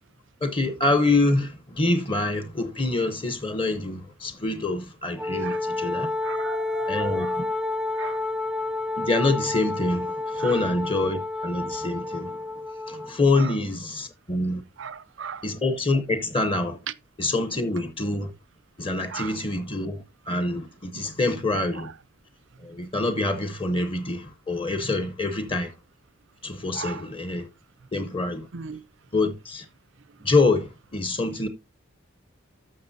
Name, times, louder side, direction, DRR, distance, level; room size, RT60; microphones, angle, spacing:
voice 1, 0.4-6.1 6.9-7.4 9.0-12.4 12.9-14.6 15.4-16.8 17.2-18.3 18.8-21.9 22.6-25.7 26.4-27.5 27.9-28.5 29.1-29.6 30.2-31.5, left 2 dB, 25° left, 0.9 m, -26 dB
Wind instrument woodwind instrument, 5.2-13.2, left 2 dB, 5° right, 0.5 m, -30 dB
voice 2, 6.2-7.4 8.0-8.2 10.4-10.6 13.4-13.5 14.8-15.4 19.1-19.4 20.9-21.1 21.8-21.9 26.7-27.0 28.5-28.8, right 6 dB, 60° right, 0.5 m, -37 dB
13.0 x 6.2 x 2.7 m
head